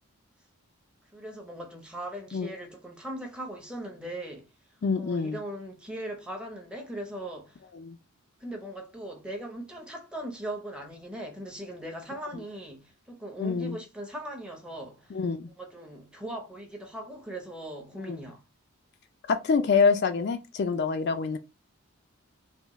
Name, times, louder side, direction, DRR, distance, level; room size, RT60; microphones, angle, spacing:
voice 1, 1.1-4.5 5.0-7.6 8.4-15.2 15.6-18.4, right 1 dB, 5° right, 0.7 m, -39 dB
voice 2, 4.8-5.4 7.8-8.0 13.4-13.8 15.1-15.5 18.1-18.2 19.3-21.4, left 5 dB, 50° left, 0.3 m, -26 dB
3.5 x 2.3 x 3.0 m
head